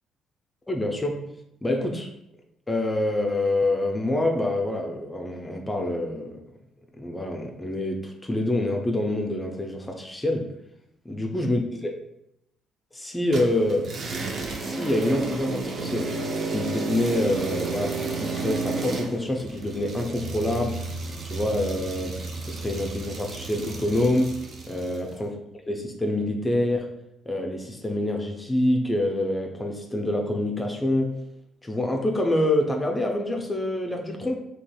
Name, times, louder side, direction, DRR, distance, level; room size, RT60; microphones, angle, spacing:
voice 1, 0.7-2.1 2.7-6.4 7.0-10.5 11.0-11.9 12.9-14.0 14.6-16.2 16.4-20.9 21.2-25.4 25.7-26.9 27.3-31.2 31.6-34.4, left 1 dB, 15° left, 2 dB, 0.5 m, -26 dB
sound 1, 13.3-25.1, right 3 dB, 50° right, 0.5 m, -32 dB
3.9 x 2.8 x 2.3 m, 0.81 s
hypercardioid pair, 50°, 0 cm